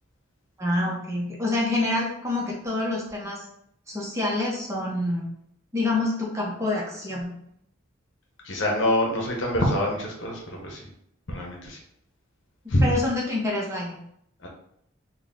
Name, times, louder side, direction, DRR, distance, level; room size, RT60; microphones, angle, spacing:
voice 1, 0.6-3.4 3.9-5.3 5.7-7.3 12.8-14.0, left 2 dB, 15° right, -4 dB, 0.8 m, -27 dB
voice 2, 8.4-10.9 11.3-11.8 12.7-12.9 14.4-14.5, left 1 dB, 65° left, -1 dB, 0.9 m, -25 dB
4.1 x 2.3 x 3.6 m, 0.73 s
head